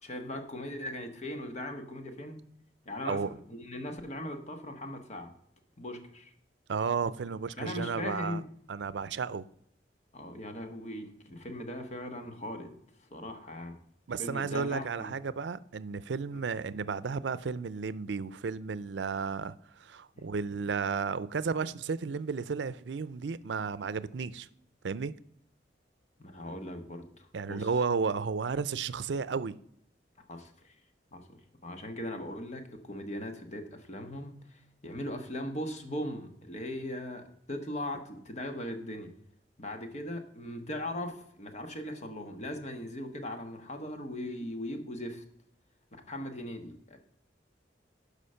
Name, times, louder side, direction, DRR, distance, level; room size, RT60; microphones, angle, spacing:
voice 1, 0.0-2.4 2.8-5.3 5.8-6.3 7.6-8.4 10.1-12.8 13.1-13.8 14.2-15.2 16.3-16.5 20.1-20.2 26.2-27.7 30.3-30.7 31.1-39.1 39.6-45.2 46.1-47.0, left 1 dB, 40° left, 1.4 m, -39 dB
voice 2, 6.7-8.4 8.7-9.4 14.1-19.5 19.8-24.5 24.8-25.1 27.3-29.5, right 5 dB, 85° right, 0.5 m, -33 dB
11.5 x 5.1 x 5.6 m
head